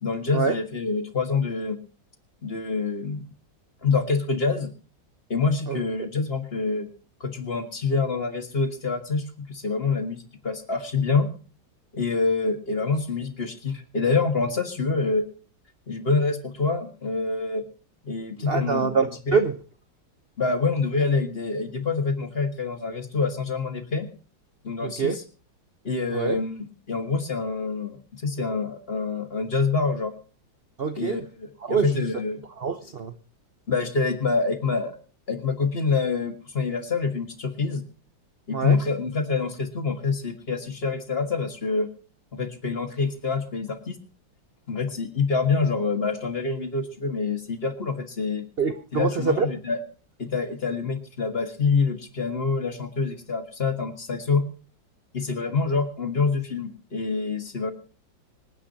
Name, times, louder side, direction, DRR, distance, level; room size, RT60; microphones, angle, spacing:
voice 1, 0.0-1.8 2.4-3.2 3.8-4.7 5.3-6.9 7.2-11.3 11.9-15.3 15.9-17.6 18.0-18.9 19.3-19.4 20.4-24.1 24.6-25.2 25.8-30.1 31.0-32.4 33.7-34.9 35.3-37.8 38.5-41.9 42.3-44.0 44.7-48.5 48.9-49.8 50.2-54.5 55.1-57.7, left 4 dB, 35° left, 1.7 m, -26 dB
voice 2, 18.5-19.5 24.8-25.2 26.1-26.4 30.8-31.2 31.6-31.9 32.6-33.1 38.5-38.8 48.6-49.5, right 5 dB, 45° right, 0.8 m, -24 dB
25.5 x 9.8 x 2.8 m
omnidirectional pair, 2.1 m